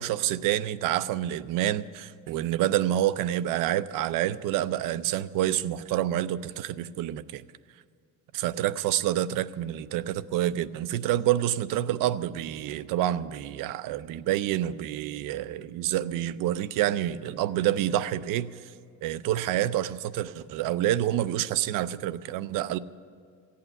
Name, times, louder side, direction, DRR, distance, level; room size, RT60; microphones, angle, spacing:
voice 1, 0.0-7.4 8.3-18.5 19.0-22.8, right 12 dB, 80° right, 0.6 m, -28 dB
15.5 x 8.6 x 8.8 m
cardioid pair, 170°, 32 cm